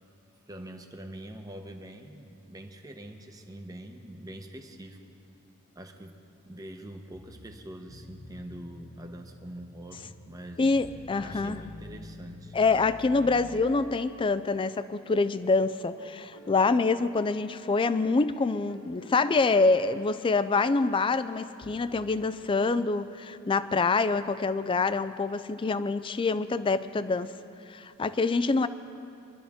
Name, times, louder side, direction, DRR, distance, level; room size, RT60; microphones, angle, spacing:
voice 1, 0.5-5.0 5.7-6.2 6.4-10.7 11.2-12.6, right 1 dB, 15° right, 4 dB, 0.9 m, -44 dB
sound 1, 7.1-15.4 16.0-16.8 18.7-20.4 21.5-24.1, left 2 dB, 60° left, 1.3 m, -49 dB
voice 2, 10.6-11.6 12.5-27.3 27.7-28.7, left 3 dB, 25° left, 14 dB, 0.3 m, -26 dB
23.5 x 12.5 x 3.6 m, 2.7 s
head